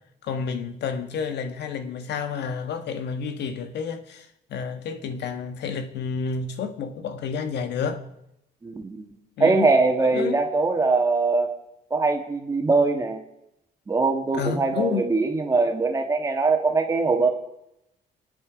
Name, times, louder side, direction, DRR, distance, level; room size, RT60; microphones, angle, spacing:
voice 1, 0.2-8.0 9.4-9.7 10.0-10.4 14.3-15.1, left 6 dB, 80° left, 1.5 m, -30 dB
voice 2, 8.6-9.1 9.4-11.5 11.9-13.2 13.9-17.3, right 3 dB, 20° right, 1.6 m, -22 dB
28.5 x 9.7 x 5.1 m
cardioid pair, 180°, 18 cm